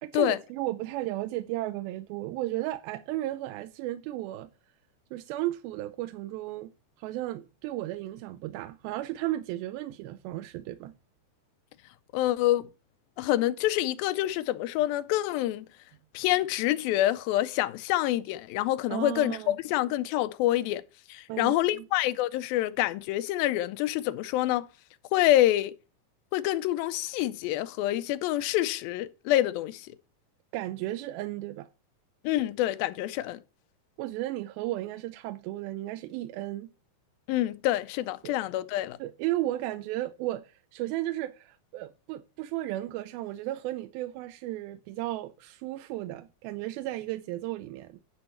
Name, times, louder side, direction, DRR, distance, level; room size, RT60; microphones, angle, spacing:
voice 1, 0.0-4.5 5.1-6.7 7.0-10.9 18.9-19.6 21.3-21.8 30.5-31.7 34.0-36.7 38.2-38.4 39.0-48.0, right 15 dB, 90° right, 2.4 m, -34 dB
voice 2, 12.1-12.7 13.2-15.7 16.1-20.8 21.1-24.7 25.1-25.7 26.3-30.0 32.2-33.4 37.3-39.0, left 14 dB, 85° left, 2.4 m, -27 dB
10.5 x 5.3 x 4.4 m
omnidirectional pair, 4.2 m